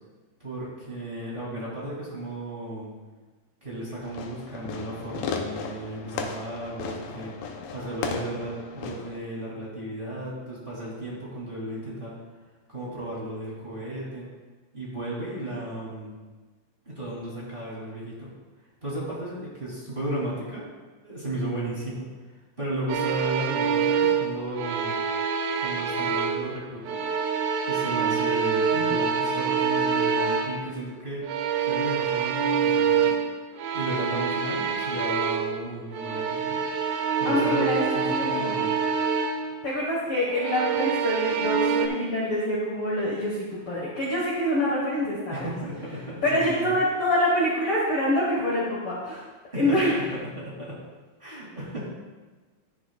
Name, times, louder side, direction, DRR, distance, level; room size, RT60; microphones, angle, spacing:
voice 1, 0.4-2.9 3.6-12.2 12.7-14.3 14.7-16.2 16.8-18.3 18.8-20.7 21.0-22.1 22.6-24.9 25.6-27.0 27.7-31.2 31.6-33.2 33.7-36.6 37.2-38.8 45.3-46.7 49.5-50.8 51.2-51.9, right 1 dB, 15° right, -7 dB, 2.8 m, -34 dB
Fireworks, 4.0-9.2, left 5 dB, 85° left, 2.5 m, -35 dB
sound 1, 22.9-26.5 26.9-30.7 31.2-35.6 35.9-39.5 40.3-41.9, right 6 dB, 85° right, 2.6 m, -26 dB
voice 2, 37.2-38.7 39.6-45.5 46.2-49.2 49.6-49.9, left 1 dB, 50° left, -6 dB, 2.0 m, -26 dB
12.0 x 10.0 x 2.4 m, 1.3 s
omnidirectional pair, 4.0 m